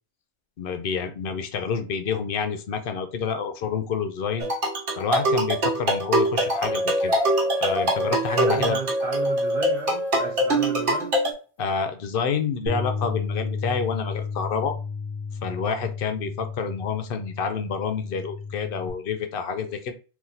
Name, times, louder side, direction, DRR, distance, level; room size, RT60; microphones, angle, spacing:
voice 1, 0.6-4.5 5.0-7.2 7.6-8.8 11.6-14.8 15.4-19.9, left 6 dB, 60° left, 0.6 m, -28 dB
sound 1, 4.4-11.3, right 1 dB, 65° right, 1.3 m, -24 dB
sound 2, 6.5-11.0, equal, 5° right, 0.3 m, -28 dB
voice 2, 8.3-11.1, right 5 dB, 50° right, 1.1 m, -34 dB
Bass guitar, 12.7-18.9, left 4 dB, 85° right, 1.3 m, -32 dB
3.8 x 2.6 x 2.7 m
omnidirectional pair, 1.3 m